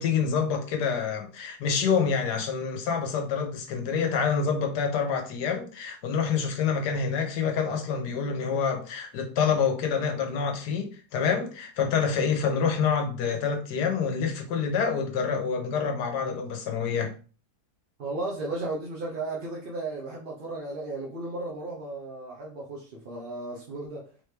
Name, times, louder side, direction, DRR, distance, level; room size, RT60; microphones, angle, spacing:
voice 1, 0.0-17.1, left 6 dB, 85° left, 1.4 m, -27 dB
voice 2, 18.0-24.1, right 2 dB, 45° right, 0.7 m, -35 dB
4.0 x 3.2 x 3.3 m
omnidirectional pair, 1.7 m